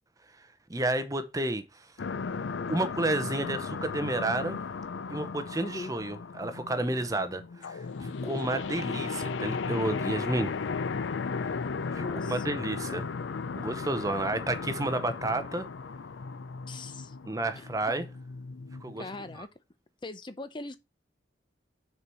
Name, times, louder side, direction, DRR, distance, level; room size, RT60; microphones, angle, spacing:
voice 1, 0.4-1.9 2.7-4.6 5.1-10.6 11.9-13.1 13.6-15.7 17.3-18.1 18.8-19.0, right 2 dB, 20° right, 0.7 m, -31 dB
sound 1, 2.0-19.4, left 5 dB, 85° left, 0.5 m, -36 dB
voice 2, 5.6-5.9 8.5-8.7 12.0-12.5 16.7-17.2 17.6-17.9 19.0-19.5 20.0-20.8, left 2 dB, 25° left, 0.6 m, -41 dB
6.6 x 4.5 x 5.4 m
head